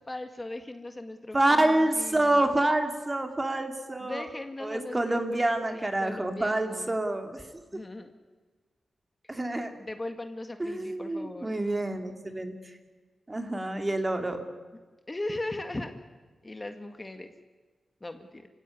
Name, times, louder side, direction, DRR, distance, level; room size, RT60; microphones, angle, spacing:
voice 1, 0.0-2.6 4.0-6.9 7.7-8.1 9.2-9.3 9.8-11.6 15.1-15.9 16.4-17.3 18.0-18.5, left 2 dB, 25° left, 7 dB, 1.9 m, -38 dB
voice 2, 1.3-4.2 4.6-7.4 9.3-9.7 10.6-12.5 13.3-14.4, right 1 dB, 25° right, 6 dB, 2.9 m, -27 dB
27.5 x 16.5 x 9.7 m, 1.4 s
cardioid pair, 75°, 0 cm